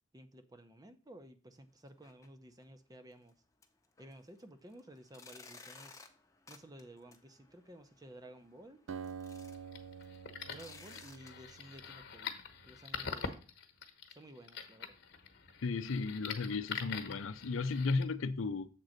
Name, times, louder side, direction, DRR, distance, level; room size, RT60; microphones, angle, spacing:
voice 1, 0.1-3.3 4.0-6.0 6.5-8.8 10.5-13.4 14.1-15.0, right 1 dB, 20° right, 0.7 m, -54 dB
sound 1, 1.9-2.3 2.6-2.7 3.2-3.3 3.6-11.3, left 4 dB, 15° left, 0.8 m, -58 dB
Acoustic guitar, 8.9-12.5, right 6 dB, 70° right, 0.5 m, -48 dB
sound 2, 9.5-18.0, left 6 dB, 55° left, 1.1 m, -45 dB
voice 2, 15.6-18.7, left 4 dB, 75° left, 0.5 m, -34 dB
7.5 x 3.9 x 6.4 m
head